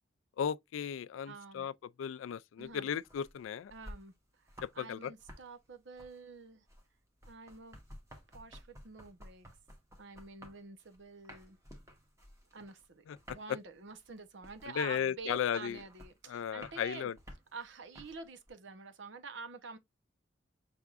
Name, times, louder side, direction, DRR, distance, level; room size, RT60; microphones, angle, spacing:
voice 1, 0.4-3.7 4.6-5.1 13.1-13.4 14.8-15.8 16.3-17.2, left 8 dB, 90° left, 0.3 m, -36 dB
voice 2, 1.2-1.7 2.6-2.9 3.7-4.1 4.4-4.5 4.7-6.6 7.2-7.8 8.3-9.5 10.0-11.6 12.5-17.1 17.5-19.8, right 4 dB, 75° right, 0.8 m, -48 dB
sound 1, 2.6-4.9 5.1-18.5, equal, 15° right, 1.1 m, -54 dB
5.6 x 3.5 x 2.4 m
head